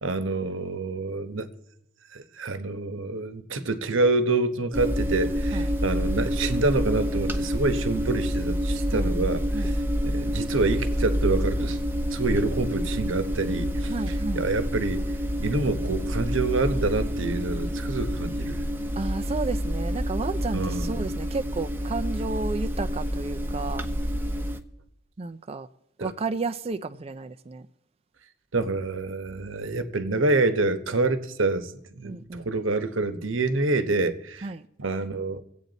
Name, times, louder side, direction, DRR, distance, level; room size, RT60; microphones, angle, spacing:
voice 1, 0.0-1.5 2.1-9.8 10.0-11.8 12.1-15.0 15.4-18.6 20.5-21.0 26.0-26.1 28.5-34.5 34.8-35.4, right 3 dB, 65° right, 1.0 m, -27 dB
sound 1, 4.7-24.6, equal, 10° right, 0.8 m, -28 dB
voice 2, 13.9-14.5 19.0-23.9 25.2-25.7 26.0-27.7 32.0-32.5 34.4-34.6, right 3 dB, 30° right, 0.4 m, -32 dB
24.0 x 8.5 x 4.0 m
head